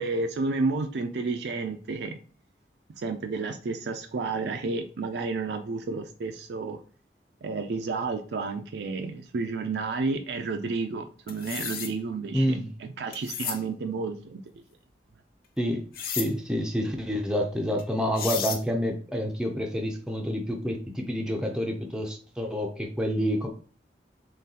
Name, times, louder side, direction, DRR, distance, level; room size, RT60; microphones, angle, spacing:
voice 1, 0.0-2.2 3.0-6.8 7.4-14.4, right 3 dB, 70° right, 5 dB, 0.4 m, -31 dB
sound 1, 11.3-11.9 13.1-13.6 15.9-16.3 17.8-17.9 18.2-18.6, left 7 dB, 55° left, 0.6 m, -32 dB
voice 2, 12.3-12.7 15.6-15.9 16.2-23.5, equal, 5° right, 1 dB, 0.4 m, -28 dB
3.8 x 3.2 x 2.8 m, 0.42 s
head